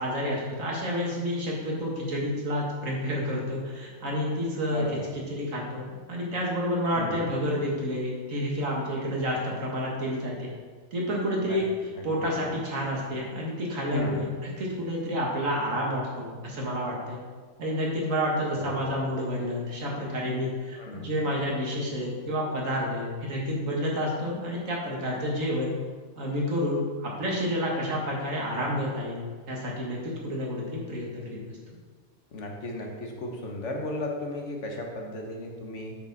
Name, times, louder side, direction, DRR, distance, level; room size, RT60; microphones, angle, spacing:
voice 1, 0.0-10.5 10.9-11.6 12.0-17.2 17.6-25.7 26.2-29.2 29.5-31.8, equal, 80° right, -3 dB, 2.1 m, -29 dB
voice 2, 4.7-5.1 6.9-7.2 11.4-11.6 12.0-12.1 13.9-14.3 18.6-18.9 20.8-21.1 32.3-36.0, left 2 dB, 65° left, 1 dB, 1.5 m, -35 dB
8.1 x 6.7 x 4.2 m, 1.5 s
omnidirectional pair, 1.3 m